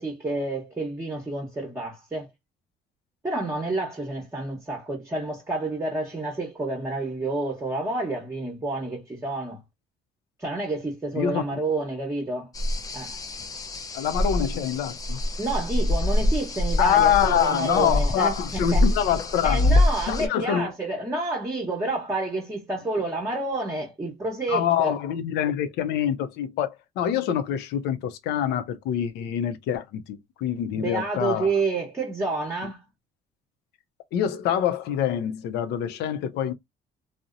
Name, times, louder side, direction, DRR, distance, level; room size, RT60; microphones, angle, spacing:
voice 1, 0.0-2.3 3.2-9.6 10.4-12.5 12.9-13.2 15.4-18.8 19.4-25.0 30.7-32.8, right 2 dB, 15° right, 0.8 m, -29 dB
voice 2, 11.1-11.6 13.9-15.2 16.8-19.8 20.1-20.7 24.5-31.5 32.6-32.7 34.1-36.5, left 9 dB, 80° left, 0.5 m, -25 dB
sound 1, 12.5-20.3, left 1 dB, 20° left, 0.4 m, -25 dB
2.7 x 2.0 x 2.4 m
cardioid pair, 110°, 17 cm